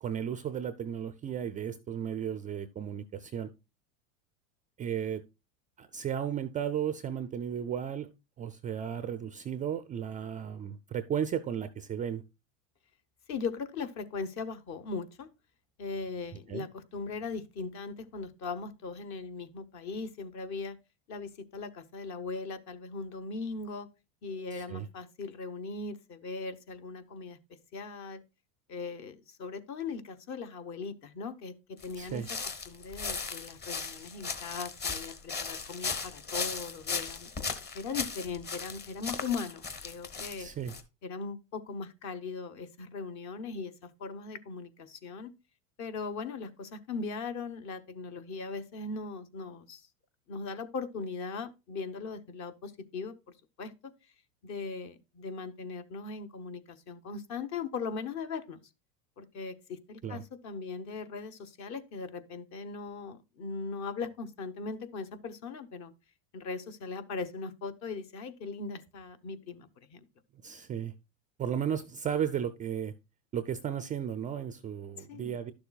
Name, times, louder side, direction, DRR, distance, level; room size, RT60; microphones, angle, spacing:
voice 1, 0.0-3.5 4.8-5.2 5.8-8.1 8.4-12.2 16.5-16.7 24.5-24.9 32.0-32.3 40.4-40.7 60.0-60.2 70.4-70.9 71.4-72.9 73.3-75.5, right 9 dB, 20° right, 0.4 m, -34 dB
voice 2, 13.3-15.3 15.8-20.8 21.1-23.9 24.2-27.4 27.7-28.2 28.7-32.4 32.7-37.3 37.7-40.5 41.0-45.3 45.8-49.9 50.3-53.2 53.6-53.9 54.4-58.6 59.2-65.9 66.3-70.1 75.1-75.4, left 4 dB, 45° left, 1.1 m, -39 dB
sound 1, 31.8-40.8, left 5 dB, 25° left, 1.2 m, -37 dB
11.5 x 6.8 x 2.4 m
supercardioid pair, 130°, 40 cm